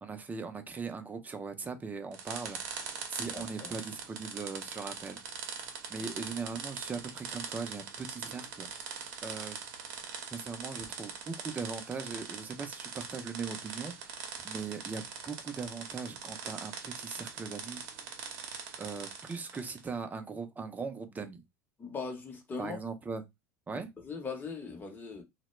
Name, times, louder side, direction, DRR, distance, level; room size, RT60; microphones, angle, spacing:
voice 1, 0.0-5.2 5.9-8.7 9.2-9.6 10.3-17.8 18.8-21.4 22.6-23.2 23.7-23.9, right 5 dB, 20° right, 0.5 m, -40 dB
sound 1, 2.1-19.9, right 6 dB, 60° right, 0.7 m, -42 dB
voice 2, 3.3-3.7 21.8-22.8 24.0-25.2, left 4 dB, 20° left, 0.8 m, -39 dB
2.1 x 2.1 x 3.0 m
hypercardioid pair, 85°, 9 cm